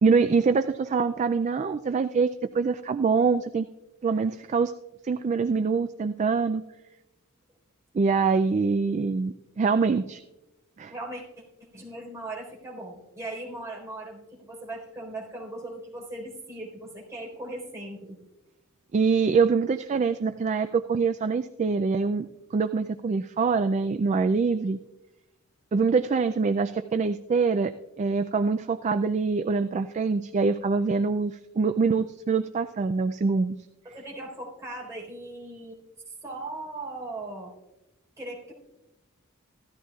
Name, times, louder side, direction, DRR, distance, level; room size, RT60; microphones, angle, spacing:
voice 1, 0.0-2.3 2.5-3.7 4.0-4.7 5.0-6.6 7.9-10.2 10.8-10.9 18.9-22.3 22.5-24.8 25.7-27.7 28.0-33.6, right 4 dB, 35° right, 9 dB, 0.3 m, -24 dB
voice 2, 10.9-11.2 11.7-18.2 33.8-35.8 36.1-37.5 38.2-38.5, right 2 dB, 15° right, -3 dB, 4.0 m, -38 dB
16.5 x 13.5 x 2.4 m, 0.98 s
head